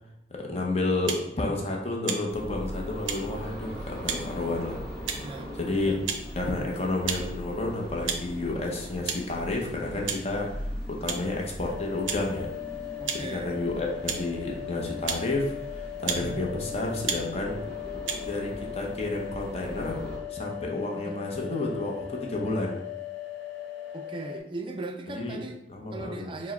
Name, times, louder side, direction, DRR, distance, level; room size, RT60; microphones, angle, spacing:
voice 1, 0.3-4.8 5.1-5.2 5.5-6.0 6.4-12.5 13.1-17.6 18.2-20.0 20.3-22.8 25.1-25.4 25.7-26.3, left 2 dB, 35° left, 0 dB, 0.6 m, -31 dB
sound 1, 1.1-1.2 2.0-2.2 3.1-3.2 4.0-4.2 5.1-5.3 6.0-6.2 7.1-7.2 8.0-8.2 9.1-9.2 10.1-10.2 11.1-11.2 12.0-12.2 13.1-13.2 14.0-14.2 15.0-15.2 16.0-16.2 17.0-17.2 18.1-18.2, right 7 dB, 85° right, 0.5 m, -30 dB
sound 2, 2.3-20.2, equal, 5° left, 0.9 m, -40 dB
voice 2, 5.2-5.5 5.8-6.0 13.0-13.6 16.2-16.4 20.9-21.2 23.9-25.6 25.9-26.5, right 2 dB, 25° right, 5 dB, 0.3 m, -38 dB
sound 3, 11.6-24.4, left 11 dB, 75° left, 0.5 m, -39 dB
4.5 x 2.1 x 4.1 m, 0.87 s
head